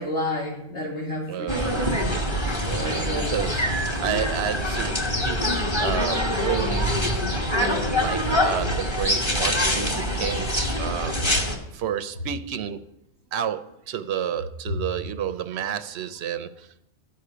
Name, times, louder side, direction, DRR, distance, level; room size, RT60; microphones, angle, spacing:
voice 1, 0.0-2.2 2.8-3.3, left 1 dB, 90° left, -5 dB, 3.8 m, -31 dB
voice 2, 1.3-2.0 2.6-3.7 4.0-6.9 7.6-10.5 10.8-11.2 11.7-12.8 13.3-16.9, right 9 dB, 75° right, 12 dB, 0.9 m, -31 dB
sound 1, 1.5-11.6, equal, 25° left, 1.3 m, -24 dB
11.5 x 5.3 x 6.7 m, 0.82 s
omnidirectional pair, 1.1 m